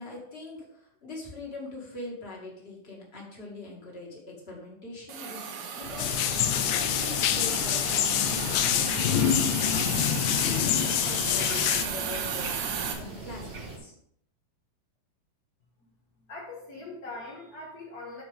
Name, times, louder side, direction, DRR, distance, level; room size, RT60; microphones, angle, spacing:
voice 1, 0.0-5.5 5.7-13.9, left 2 dB, 25° left, -3 dB, 1.5 m, -43 dB
Hiss, 5.1-12.9, right 6 dB, 75° right, 2.8 m, -35 dB
sound 1, 5.8-13.8, right 2 dB, 45° right, 0.7 m, -41 dB
sound 2, 6.0-11.8, left 11 dB, 85° left, 1.9 m, -26 dB
voice 2, 16.3-18.2, left 2 dB, 65° left, -5 dB, 0.9 m, -41 dB
13.0 x 4.7 x 3.5 m, 0.71 s
omnidirectional pair, 4.3 m